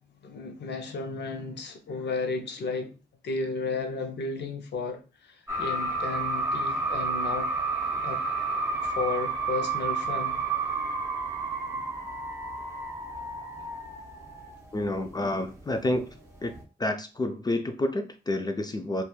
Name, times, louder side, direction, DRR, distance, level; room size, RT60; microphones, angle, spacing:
voice 1, 0.2-3.0 3.2-7.5 8.0-8.2 8.8-10.4, left 4 dB, 85° left, 0.6 m, -33 dB
sound 1, 5.5-15.0 15.3-16.1 16.3-16.6, right 3 dB, 15° right, 0.7 m, -31 dB
voice 2, 14.7-16.2 16.4-16.5 16.8-19.0, left 1 dB, 25° left, 0.3 m, -29 dB
2.9 x 2.3 x 2.3 m
wide cardioid pair, 95°, 17 cm